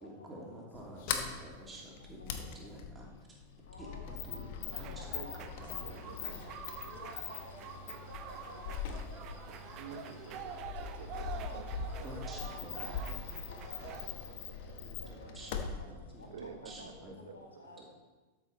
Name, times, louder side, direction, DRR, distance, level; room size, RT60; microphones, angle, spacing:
voice 1, 0.0-3.4 3.8-4.5 4.8-6.4 12.0-13.2 14.8-16.3 16.6-17.2 17.8-17.9, right 1 dB, 15° right, -3 dB, 2.9 m, -49 dB
Sliding door, 0.7-17.1, left 6 dB, 50° left, 1.1 m, -42 dB
voice 2, 3.7-7.8 8.1-9.7 11.1-13.2 13.5-14.3 14.6-14.7 15.0-15.1 15.4-15.5 16.2-17.9, left 2 dB, 75° left, 0 dB, 1.8 m, -53 dB
sound 1, 4.7-14.1, right 8 dB, 35° right, 0.8 m, -47 dB
voice 3, 5.8-6.4 6.8-6.9 8.3-8.4 9.8-11.6 14.7-14.8 15.2-15.3 16.3-17.6, right 6 dB, 60° right, 7 dB, 1.1 m, -49 dB
12.5 x 6.9 x 4.2 m, 1.3 s
figure-of-eight pair, 90°, 0 cm